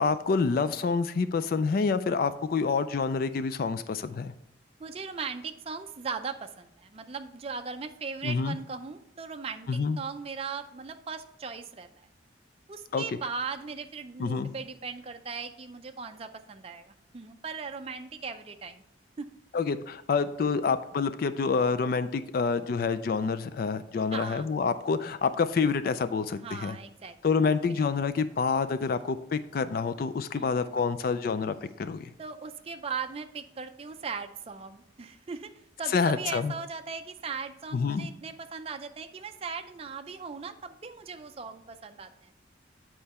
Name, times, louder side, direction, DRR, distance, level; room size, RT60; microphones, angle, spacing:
voice 1, 0.0-4.3 8.2-8.6 9.7-10.0 12.9-13.0 14.2-14.5 19.5-26.8 27.2-32.1 35.9-36.5 37.7-38.1, left 5 dB, 50° left, 13 dB, 0.3 m, -27 dB
voice 2, 4.8-12.1 12.7-18.8 19.2-19.3 24.1-24.5 26.4-27.2 27.7-27.8 30.3-30.7 32.2-35.5 35.8-42.3, right 5 dB, 30° right, 7 dB, 0.4 m, -38 dB
8.6 x 4.5 x 4.2 m, 0.78 s
head